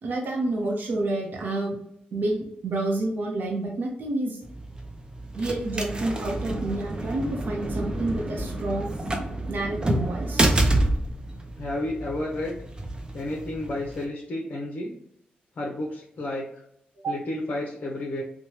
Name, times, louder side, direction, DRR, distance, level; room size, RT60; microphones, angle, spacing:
voice 1, 0.0-1.8 2.1-4.4 5.3-8.9 9.5-10.6 17.0-17.1, right 2 dB, 65° right, -1 dB, 0.7 m, -29 dB
sound 1, 4.4-14.0, right 1 dB, 25° right, 0.5 m, -28 dB
voice 2, 11.6-12.6 13.1-14.9 15.6-16.5 17.1-18.2, left 1 dB, 55° left, -2 dB, 0.6 m, -31 dB
2.9 x 2.2 x 2.9 m, 0.73 s
cardioid pair, 85°, 3 cm